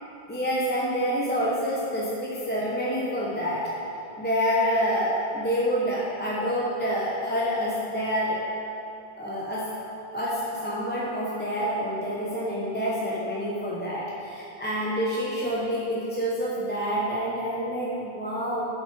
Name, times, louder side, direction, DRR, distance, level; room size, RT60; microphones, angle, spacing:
voice 1, 0.3-3.6 4.2-8.4 9.2-9.7 10.1-18.6, equal, 10° left, -6 dB, 1.0 m, -27 dB
8.5 x 5.2 x 6.1 m, 2.8 s
omnidirectional pair, 1.1 m